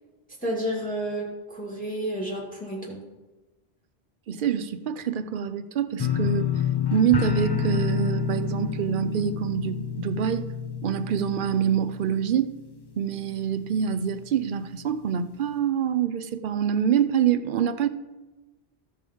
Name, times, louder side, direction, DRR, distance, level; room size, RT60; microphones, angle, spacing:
voice 1, 0.4-3.0, right 1 dB, 5° left, 1.9 m, -31 dB
voice 2, 4.3-6.5 6.9-10.5 10.8-12.6 13.0-17.9, right 8 dB, 60° right, 0.7 m, -25 dB
sound 1, 6.0-12.9 13.2-13.7 14.1-14.2, left 7 dB, 35° left, 0.4 m, -29 dB
13.5 x 5.3 x 5.0 m
omnidirectional pair, 1.1 m